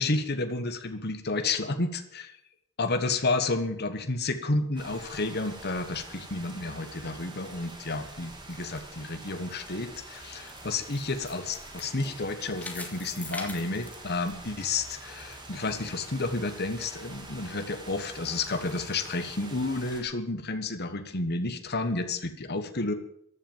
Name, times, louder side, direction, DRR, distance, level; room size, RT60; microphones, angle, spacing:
voice 1, 0.0-2.3 2.8-22.9, left 3 dB, 50° left, 8 dB, 1.5 m, -31 dB
sound 1, 4.8-20.0, right 2 dB, 20° right, 3.4 m, -46 dB
sound 2, 10.1-14.9 15.3-15.4 16.0-16.1, left 2 dB, 5° left, 2.4 m, -43 dB
15.0 x 11.0 x 7.3 m, 0.72 s
head